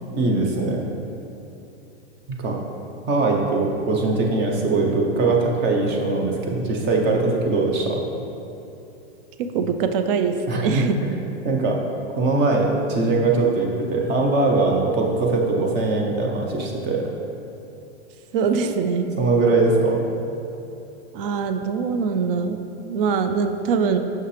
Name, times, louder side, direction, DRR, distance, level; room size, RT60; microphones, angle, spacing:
voice 1, 0.1-0.8 2.3-2.5 3.1-8.0 10.5-10.9 11.4-11.8 12.2-17.1 19.2-20.1, right 3 dB, 30° right, 0 dB, 0.9 m, -21 dB
voice 2, 9.5-11.0 18.3-19.2 21.1-24.0, right 5 dB, 55° right, 7 dB, 0.5 m, -23 dB
5.9 x 5.6 x 3.3 m, 2.8 s
hypercardioid pair, 130°, 33 cm